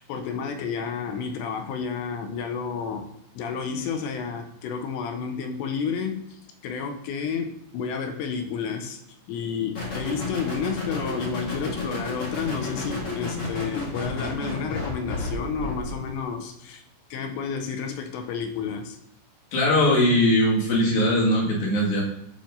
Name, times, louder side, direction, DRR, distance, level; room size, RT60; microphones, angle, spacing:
voice 1, 0.0-3.1 3.4-6.3 6.6-9.0 9.3-16.8 17.1-19.0, left 6 dB, 85° left, 5 dB, 2.8 m, -31 dB
sound 1, 9.8-16.1, left 2 dB, 45° left, 2.5 m, -32 dB
voice 2, 19.5-22.0, left 1 dB, 60° left, -4 dB, 3.5 m, -20 dB
11.5 x 4.6 x 2.6 m, 0.79 s
omnidirectional pair, 5.2 m